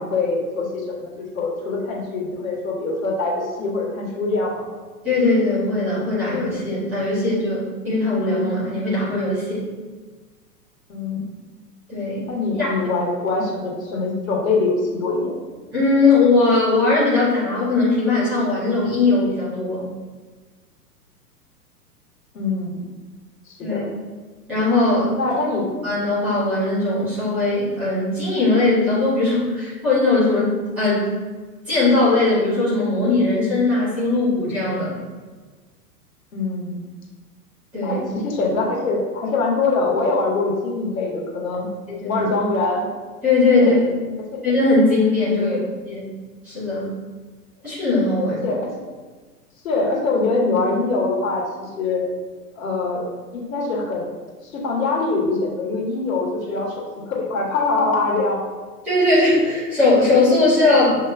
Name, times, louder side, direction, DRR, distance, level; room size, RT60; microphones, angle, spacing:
voice 1, 0.0-4.7 10.9-11.3 12.3-15.3 22.3-22.9 23.5-23.9 25.2-25.7 36.3-36.8 37.8-41.7 42.0-42.9 43.6-43.8 44.3-44.5 48.3-48.7 49.6-52.0 52.6-53.0 53.3-54.1 54.4-58.5, left 3 dB, 55° left, -2 dB, 1.4 m, -23 dB
voice 2, 5.0-9.7 11.9-12.2 12.5-12.7 15.7-19.8 23.6-23.8 24.5-25.2 25.8-31.1 31.7-35.0 37.7-38.0 41.9-42.2 43.2-43.8 44.4-45.6 45.8-46.1 46.4-46.9 47.6-48.4 58.8-61.1, left 2 dB, 5° right, -12 dB, 0.4 m, -19 dB
6.9 x 2.7 x 2.4 m, 1.4 s
figure-of-eight pair, 105°, 49 cm